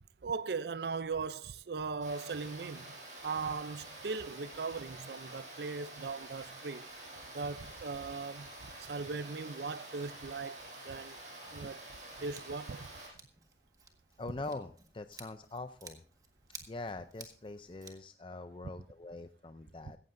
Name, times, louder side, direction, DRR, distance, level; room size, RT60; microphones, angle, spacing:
voice 1, 0.2-3.0 3.2-6.9 7.3-11.2 11.5-11.8 12.2-12.9, right 4 dB, 70° right, 0.5 m, -39 dB
Water, 2.0-13.1, right 2 dB, 45° right, 5.8 m, -48 dB
Scissors, 12.3-17.9, right 4 dB, 20° right, 1.6 m, -55 dB
voice 2, 14.2-16.0 16.7-20.0, left 2 dB, 30° left, 0.5 m, -43 dB
16.0 x 15.0 x 2.6 m
head